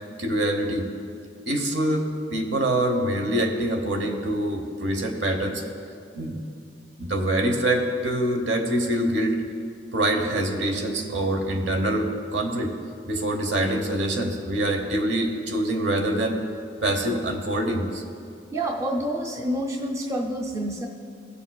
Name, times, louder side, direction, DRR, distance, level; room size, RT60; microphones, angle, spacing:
voice 1, 0.2-0.8 1.5-5.6 6.1-6.4 7.0-9.4 9.9-12.7 13.1-16.4 16.8-18.0, right 1 dB, 70° right, 4 dB, 1.0 m, -25 dB
voice 2, 18.5-20.9, right 1 dB, 15° right, 0 dB, 0.5 m, -28 dB
16.5 x 6.8 x 2.3 m, 2.5 s
head